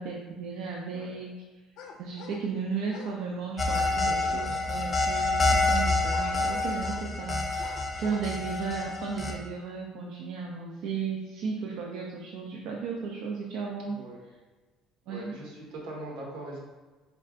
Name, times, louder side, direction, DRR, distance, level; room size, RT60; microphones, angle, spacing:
voice 1, 0.0-1.3 2.0-14.0 15.1-15.3, right 5 dB, 65° right, -1 dB, 0.4 m, -35 dB
sound 1, 1.8-2.5 2.8-3.2 6.1-7.1 7.6-8.3, left 5 dB, 70° left, 0.4 m, -46 dB
sound 2, 3.6-9.3, left 2 dB, 15° left, 0.5 m, -27 dB
voice 2, 3.8-4.5 4.9-5.0 13.9-14.2 15.1-16.6, right 2 dB, 85° right, -2 dB, 1.2 m, -42 dB
3.4 x 3.3 x 3.8 m, 1.3 s
cardioid pair, 170°, 0 cm